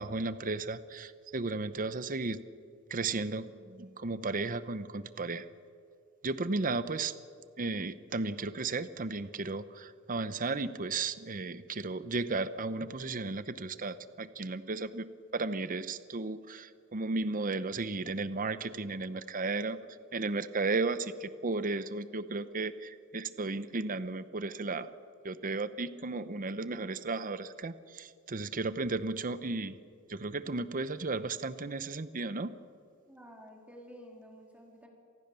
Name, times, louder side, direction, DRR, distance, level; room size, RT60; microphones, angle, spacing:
voice 1, 0.0-2.4 2.9-5.5 6.2-7.1 7.6-19.8 20.1-24.9 25.2-29.8 30.1-32.5, right 3 dB, 40° right, 14 dB, 0.8 m, -34 dB
voice 2, 33.1-34.9, equal, 5° right, 1 dB, 3.8 m, -51 dB
27.0 x 19.5 x 6.9 m, 2.3 s
head